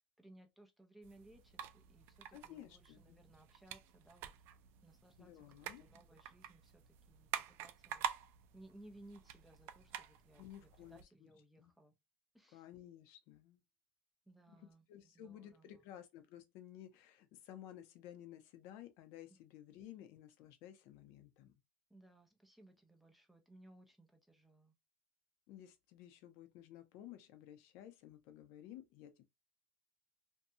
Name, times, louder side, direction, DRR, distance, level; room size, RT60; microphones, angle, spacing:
voice 1, 0.2-4.3 4.8-5.4 5.8-8.1 8.5-11.9 12.3-12.6 14.3-15.7 21.9-24.7, right 1 dB, ahead, 0.6 m, -62 dB
sound 1, 1.0-11.0, right 10 dB, 55° right, 0.4 m, -48 dB
voice 2, 2.3-3.2 5.2-5.9 10.4-11.3 11.6-11.7 12.5-13.6 14.5-21.5 25.5-29.2, left 11 dB, 65° left, 0.6 m, -55 dB
2.6 x 2.2 x 2.6 m
cardioid pair, 135°, 5 cm